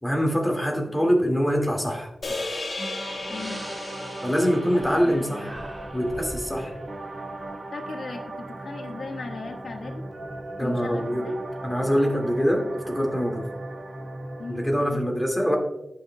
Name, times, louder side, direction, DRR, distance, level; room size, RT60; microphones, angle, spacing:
voice 1, 0.0-2.1 4.2-5.5 5.9-6.7 10.6-11.3 11.6-13.5 14.5-15.6, equal, 5° left, 0 dB, 2.1 m, -24 dB
sound 1, 2.2-6.6, left 2 dB, 55° left, 1.6 m, -36 dB
Breathing, 2.7-2.8 3.2-5.2 5.4-6.5, right 1 dB, 20° right, 1.7 m, -42 dB
sound 2, 2.8-14.7, right 2 dB, 50° right, 1.3 m, -37 dB
voice 2, 3.3-3.7 4.7-5.6 7.7-10.0 10.6-11.4 14.4-15.1, left 3 dB, 75° left, 2 dB, 1.4 m, -38 dB
19.0 x 6.3 x 2.2 m, 0.93 s
wide cardioid pair, 100°, 0 cm